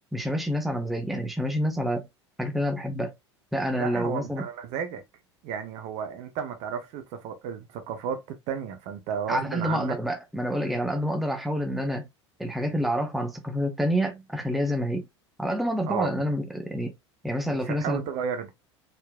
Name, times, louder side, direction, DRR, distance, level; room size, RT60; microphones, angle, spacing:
voice 1, 0.0-2.0 2.4-3.1 3.5-4.4 9.3-12.0 12.4-15.0 15.4-16.9 17.2-18.0, equal, ahead, 0.8 m, -28 dB
voice 2, 3.7-5.0 5.4-10.0 15.9-16.2 17.5-18.5, right 7 dB, 45° right, 0.9 m, -33 dB
4.3 x 3.8 x 2.2 m
figure-of-eight pair, 75°, 15 cm